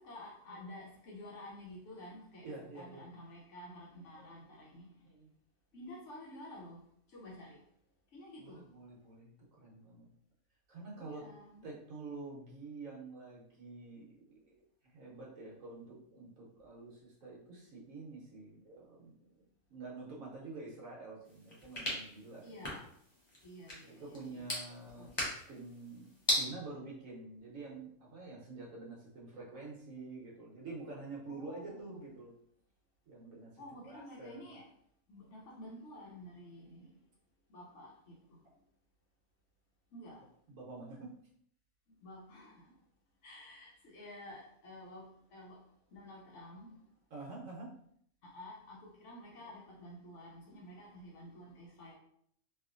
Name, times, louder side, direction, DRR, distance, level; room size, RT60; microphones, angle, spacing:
voice 1, 0.0-5.0 5.7-6.8 7.1-7.6 8.1-8.7 11.0-11.7 22.4-22.9 23.4-24.4 25.0-25.1 31.3-32.1 33.6-34.7 35.1-37.0 37.5-38.5 39.9-40.3 42.0-42.7 43.2-45.6 45.9-46.8 48.2-52.0, left 1 dB, 65° left, -2 dB, 1.0 m, -51 dB
voice 2, 2.4-3.0 4.2-4.4 5.1-5.3 8.4-10.1 10.7-11.2 11.6-19.4 19.7-22.5 23.8-32.3 33.1-34.4 40.5-41.1 47.1-47.7, right 3 dB, 70° right, -4 dB, 1.2 m, -48 dB
sound 1, 21.2-26.4, equal, 25° left, 0.6 m, -39 dB
3.0 x 2.4 x 2.5 m, 0.67 s
omnidirectional pair, 1.5 m